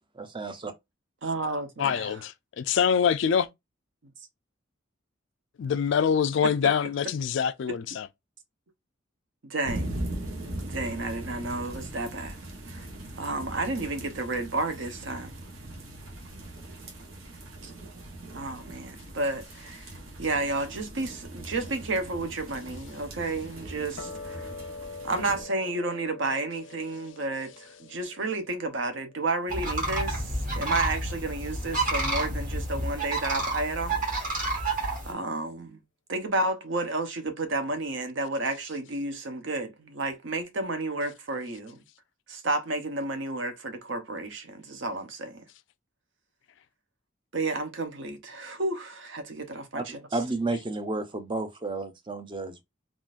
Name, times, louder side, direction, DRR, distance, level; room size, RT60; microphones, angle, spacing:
voice 1, 0.1-0.7 49.7-49.8 50.1-52.6, right 2 dB, 25° right, 0.5 m, -31 dB
voice 2, 1.2-2.1 6.4-6.5 9.4-9.9 10.7-12.4 12.7-12.9 13.2-15.4 17.6-17.7 18.3-19.9 20.2-24.5 25.0-34.0 34.3-34.5 35.1-35.8 36.1-41.8 42.3-45.4 47.3-49.8, right 2 dB, 65° right, 0.7 m, -31 dB
voice 3, 1.8-3.5 5.6-8.1, left 7 dB, 65° left, 0.3 m, -25 dB
sound 1, 9.6-25.4, right 1 dB, 85° right, 1.1 m, -40 dB
sound 2, 24.0-30.5, left 4 dB, 90° left, 0.7 m, -45 dB
sound 3, 29.5-35.1, right 2 dB, 40° right, 1.3 m, -29 dB
3.7 x 2.4 x 2.4 m
head